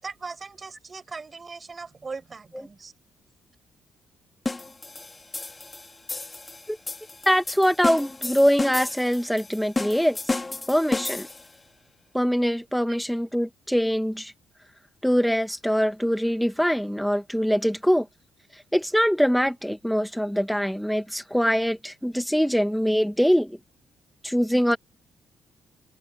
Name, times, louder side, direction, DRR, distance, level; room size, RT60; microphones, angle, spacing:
voice 1, 0.0-2.9, right 4 dB, 30° right, 7.2 m, -39 dB
sound 1, 4.5-11.6, left 3 dB, 20° left, 3.0 m, -32 dB
voice 2, 7.3-10.4 10.7-11.3 12.1-14.3 15.0-18.1 18.7-23.6 24.2-24.8, equal, ahead, 2.3 m, -23 dB
cardioid pair, 90°, 0 cm